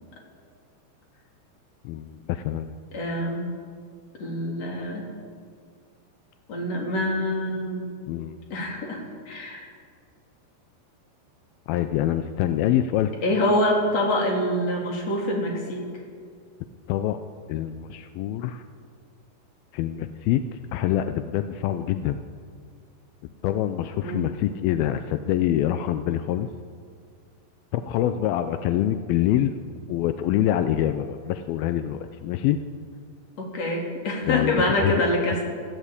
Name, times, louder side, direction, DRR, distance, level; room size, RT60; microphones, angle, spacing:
voice 1, 1.8-2.7 8.1-8.4 11.7-13.1 16.9-17.2 17.5-18.6 19.7-22.2 23.4-26.5 27.7-29.5 29.9-32.6 34.3-34.9, left 12 dB, 80° left, 9 dB, 2.2 m, -25 dB
voice 2, 2.9-3.4 4.2-5.1 6.5-7.9 8.5-9.7 13.2-15.8 24.0-24.2 33.4-35.4, left 1 dB, 40° left, 0 dB, 4.2 m, -25 dB
23.0 x 14.5 x 8.4 m, 2.1 s
omnidirectional pair, 5.0 m